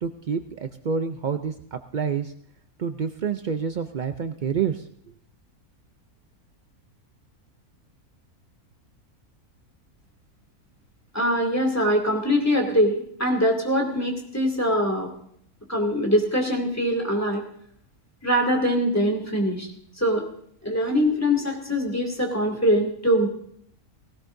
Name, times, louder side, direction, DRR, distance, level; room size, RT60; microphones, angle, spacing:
voice 1, 0.0-2.3 2.8-4.8, right 6 dB, 75° right, 8 dB, 0.4 m, -28 dB
voice 2, 11.1-15.1 15.7-17.4 18.2-19.7 20.0-20.2 20.6-23.3, equal, 10° left, 1 dB, 2.4 m, -23 dB
18.0 x 17.0 x 2.6 m, 0.67 s
omnidirectional pair, 1.6 m